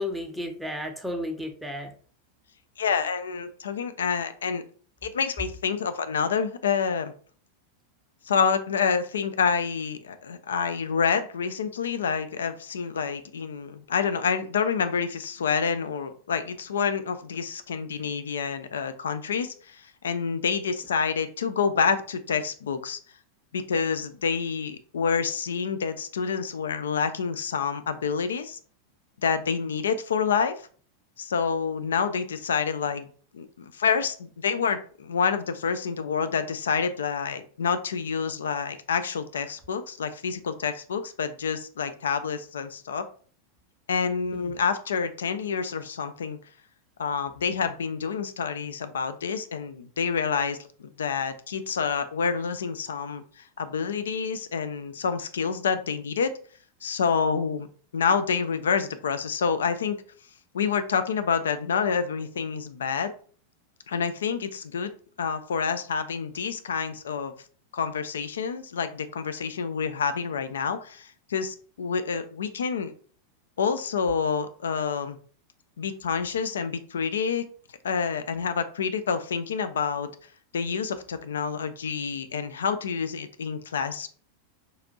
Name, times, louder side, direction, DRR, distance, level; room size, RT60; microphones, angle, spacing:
voice 1, 0.0-1.9 44.3-44.5, left 1 dB, ahead, 3 dB, 0.6 m, -33 dB
voice 2, 2.8-4.6 5.0-7.1 8.2-23.0 23.5-28.6 29.2-30.6 31.2-33.1 33.3-33.5 33.7-43.1 43.9-46.4 47.0-53.2 53.6-56.3 56.8-57.7 57.9-60.0 60.5-63.1 63.9-67.3 67.7-72.9 73.6-75.2 75.8-77.5 77.8-80.1 80.5-84.1, left 6 dB, 65° left, 11 dB, 0.3 m, -28 dB
4.0 x 2.4 x 2.6 m, 0.43 s
figure-of-eight pair, 90°, 0 cm